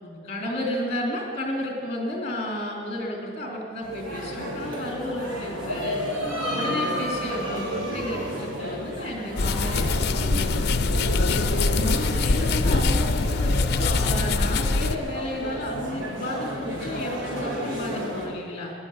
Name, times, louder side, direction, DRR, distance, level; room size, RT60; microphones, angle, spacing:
voice 1, 0.0-6.0 6.5-10.6 11.8-18.7, left 1 dB, 30° left, 0 dB, 3.3 m, -32 dB
sound 1, 3.8-18.3, equal, 75° right, 3.7 m, -32 dB
sound 2, 9.4-15.0, left 3 dB, 50° left, 0.6 m, -23 dB
14.5 x 11.0 x 8.7 m, 2.4 s
head